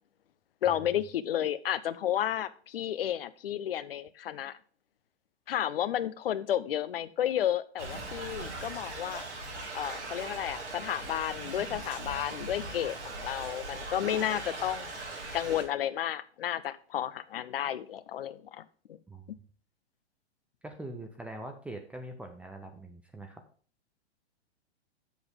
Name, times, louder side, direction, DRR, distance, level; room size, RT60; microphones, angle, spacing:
voice 1, 0.6-4.5 5.5-9.2 9.7-14.9 15.3-19.0, left 11 dB, 55° left, 16 dB, 0.6 m, -32 dB
Thunder / Rain, 7.8-15.6, right 2 dB, 80° right, 4.1 m, -40 dB
voice 2, 19.1-19.4 20.6-23.4, right 1 dB, 5° right, 4 dB, 0.4 m, -43 dB
7.7 x 7.2 x 3.7 m, 0.43 s
figure-of-eight pair, 110°, 34 cm